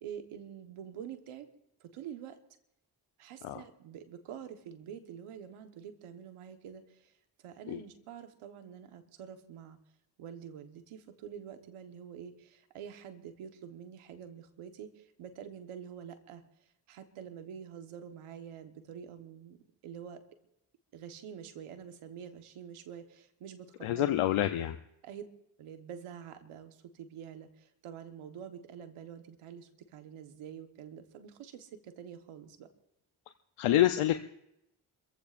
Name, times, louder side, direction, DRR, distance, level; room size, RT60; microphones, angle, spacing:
voice 1, 0.0-1.5 1.8-2.4 3.2-7.1 7.4-9.8 10.2-16.4 16.9-19.6 19.8-20.2 20.9-24.2 25.0-25.2 25.6-32.7, right 8 dB, 90° right, 8 dB, 1.3 m, -47 dB
voice 2, 23.8-24.8 33.6-34.2, left 13 dB, 85° left, 8 dB, 0.8 m, -27 dB
29.0 x 15.0 x 2.5 m, 0.83 s
supercardioid pair, 45°, 49 cm